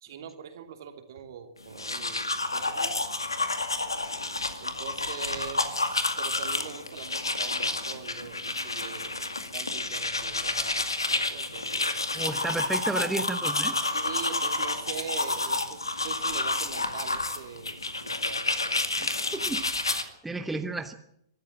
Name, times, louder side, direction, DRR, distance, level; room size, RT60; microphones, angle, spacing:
voice 1, 0.0-3.0 4.6-11.9 13.9-18.5, right 7 dB, 55° right, 5 dB, 3.1 m, -43 dB
sound 1, 1.6-20.0, left 2 dB, 85° left, 2.2 m, -30 dB
voice 2, 12.1-13.8 19.0-20.9, right 2 dB, 5° right, 7 dB, 1.2 m, -33 dB
24.0 x 13.0 x 8.6 m, 0.75 s
figure-of-eight pair, 115°, 2 cm